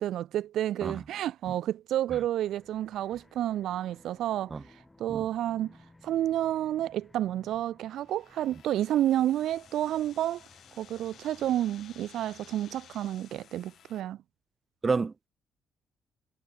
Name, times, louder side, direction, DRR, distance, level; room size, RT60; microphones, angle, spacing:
voice 1, 0.0-5.7 6.0-10.5 10.8-14.2, right 12 dB, 80° right, 0.6 m, -30 dB
sound 1, 2.3-13.0, left 2 dB, 15° left, 2.7 m, -60 dB
sound 2, 7.9-14.0, left 10 dB, 65° left, 4.8 m, -55 dB
voice 2, 14.8-15.3, right 4 dB, 30° right, 0.5 m, -29 dB
cardioid pair, 90°, 0 cm